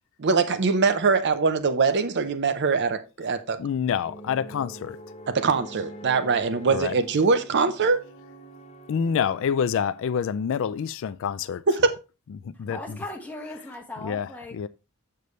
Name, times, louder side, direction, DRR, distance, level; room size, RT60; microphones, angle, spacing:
voice 1, 0.2-3.6 5.3-8.0 11.7-12.0, right 4 dB, 50° right, 0.6 m, -22 dB
voice 2, 3.6-5.0 6.7-6.9 8.9-11.6 12.4-13.0 14.0-14.7, left 7 dB, 60° left, 0.3 m, -27 dB
sound 1, 4.0-10.5, right 1 dB, 30° left, 1.1 m, -45 dB
voice 3, 12.5-14.7, left 1 dB, 10° left, 1.4 m, -38 dB
6.7 x 6.7 x 3.1 m
head